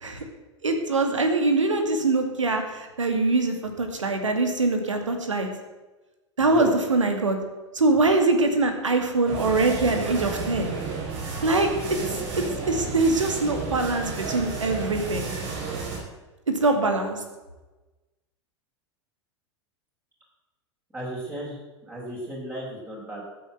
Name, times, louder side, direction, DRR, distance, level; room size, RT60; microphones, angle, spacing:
voice 1, 0.6-5.5 6.4-7.4 7.7-10.7 11.4-11.7 12.4-15.2 16.6-17.2, right 2 dB, 80° right, 5 dB, 2.3 m, -23 dB
voice 2, 6.4-6.8 20.9-23.2, right 1 dB, 15° right, -5 dB, 5.3 m, -35 dB
sound 1, 9.2-16.0, right 4 dB, 55° right, 4.8 m, -32 dB
13.5 x 8.0 x 7.9 m, 1.1 s
figure-of-eight pair, 90°, 16 cm